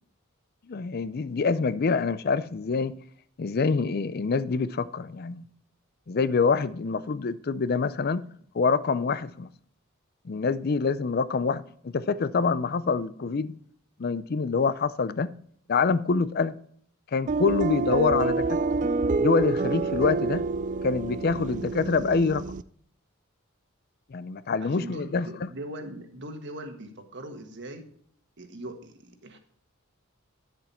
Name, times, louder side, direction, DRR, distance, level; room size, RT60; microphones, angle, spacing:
voice 1, 0.7-3.0 3.4-5.5 6.1-8.2 8.5-9.5 10.2-13.6 14.0-15.3 15.7-16.6 17.1-18.6 19.2-20.4 20.8-22.4 24.1-25.5, left 4 dB, 45° left, 0.5 m, -26 dB
sound 1, 17.3-22.6, right 3 dB, 35° right, 0.3 m, -27 dB
voice 2, 24.6-27.9 28.4-29.4, right 1 dB, 55° right, 1.5 m, -40 dB
10.0 x 7.3 x 4.3 m
head